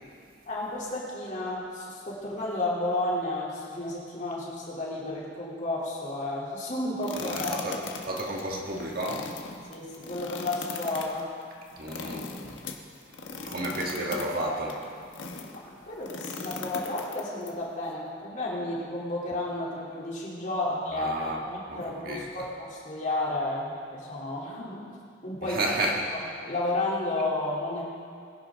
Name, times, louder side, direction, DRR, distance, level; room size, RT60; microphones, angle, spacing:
voice 1, 0.5-7.9 9.7-11.3 13.7-13.8 15.5-24.8 25.2-25.6 26.4-27.9, left 2 dB, 40° left, -5 dB, 3.3 m, -32 dB
sound 1, 7.0-15.6 16.0-17.5, left 4 dB, 85° left, 1.3 m, -39 dB
voice 2, 7.1-7.8 8.0-9.4 11.8-12.6 13.4-14.9 20.9-21.4 21.7-22.5 25.4-26.0, right 1 dB, 50° right, -1 dB, 1.8 m, -32 dB
21.5 x 11.0 x 3.8 m, 2.2 s
head